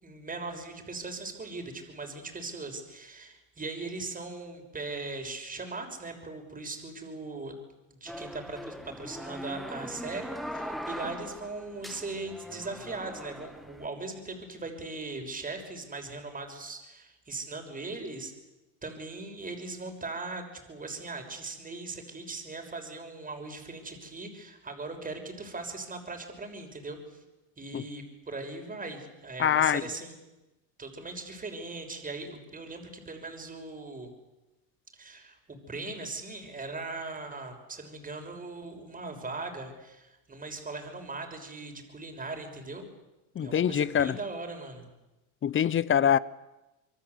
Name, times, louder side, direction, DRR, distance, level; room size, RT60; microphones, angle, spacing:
voice 1, 0.0-7.6 7.9-18.3 18.8-27.0 27.6-30.2 30.8-34.1 35.0-42.9 43.4-44.9, right 3 dB, 20° right, 6.2 m, -39 dB
sound 1, 8.1-13.9, equal, ahead, 1.8 m, -40 dB
voice 2, 29.4-29.8 43.4-44.1 45.4-46.2, left 9 dB, 30° left, 1.0 m, -24 dB
26.5 x 23.0 x 8.3 m
supercardioid pair, 100°, 40 cm